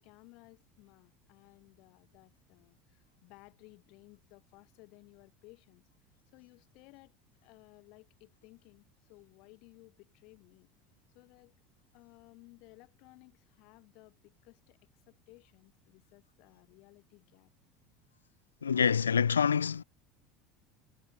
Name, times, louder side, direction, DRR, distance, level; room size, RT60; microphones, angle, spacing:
voice 1, 0.0-5.9 6.3-7.1 7.4-10.7 11.1-11.5 11.9-14.8 15.1-17.5, left 26 dB, 60° left, 3.1 m, -58 dB
voice 2, 18.6-19.8, left 7 dB, 85° left, 0.3 m, -26 dB
hypercardioid pair, 75°, 0 cm